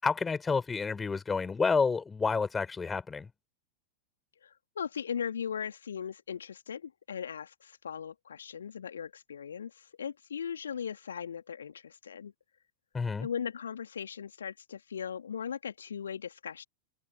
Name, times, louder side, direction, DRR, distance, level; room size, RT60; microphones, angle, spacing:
voice 1, 0.0-3.3 12.9-13.3, left 5 dB, 15° left, 4.3 m, -29 dB
voice 2, 4.4-12.3 13.2-16.6, left 7 dB, 70° left, 2.6 m, -38 dB
open air
figure-of-eight pair, 90°, 0 cm